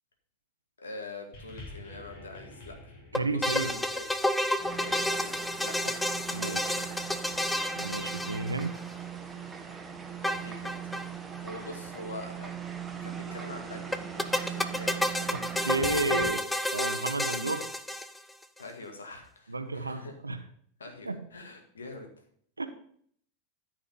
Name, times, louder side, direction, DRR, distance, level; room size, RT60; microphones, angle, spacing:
voice 1, 0.8-2.9 3.2-4.1 4.7-6.0 6.4-6.8 10.2-10.7 11.4-12.5 13.0-15.3 18.6-20.1 20.8-22.1, left 2 dB, 75° left, 3 dB, 2.0 m, -44 dB
sound 1, 1.3-5.9 6.7-6.8, left 2 dB, 50° left, 2.6 m, -50 dB
sound 2, 3.1-8.9 10.2-11.1 11.3-11.4 11.6-11.7 13.9-18.4, left 1 dB, 5° left, 0.7 m, -30 dB
voice 2, 3.1-3.7 6.3-6.6 7.8-8.8 15.3-16.4 16.7-17.7 19.5-20.4 21.0-21.2 22.6-22.7, right 2 dB, 85° right, 8 dB, 0.8 m, -32 dB
sound 3, 4.6-16.3, right 7 dB, 15° right, 1.2 m, -40 dB
13.0 x 4.9 x 5.4 m, 0.63 s
figure-of-eight pair, 85°, 0 cm